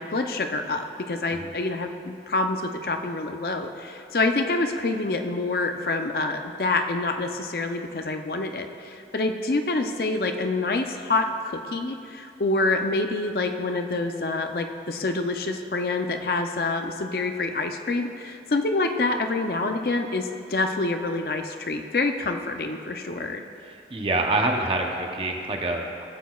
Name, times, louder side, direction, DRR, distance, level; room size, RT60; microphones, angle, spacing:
voice 1, 0.0-23.4, left 3 dB, 60° left, 5 dB, 0.5 m, -27 dB
voice 2, 23.6-26.1, right 2 dB, 30° right, 2 dB, 0.7 m, -26 dB
15.5 x 8.2 x 2.3 m, 2.6 s
head